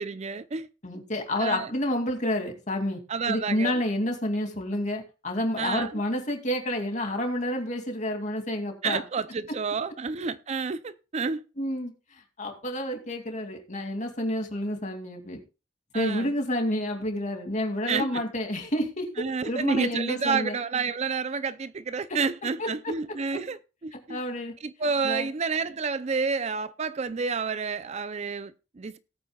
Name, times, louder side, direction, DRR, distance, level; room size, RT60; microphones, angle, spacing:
voice 1, 0.0-0.7 1.4-1.7 3.1-3.8 5.6-6.0 8.8-11.4 15.9-16.3 17.9-18.2 19.2-24.2 24.6-29.0, right 5 dB, 35° right, 0.5 m, -30 dB
voice 2, 0.8-3.0 3.3-9.0 11.6-11.9 12.4-15.4 15.9-19.1 19.4-20.6 22.6-22.7 23.3-23.4 23.9-24.5 25.0-25.3, left 1 dB, 40° left, 2.5 m, -29 dB
18.5 x 8.8 x 2.3 m
head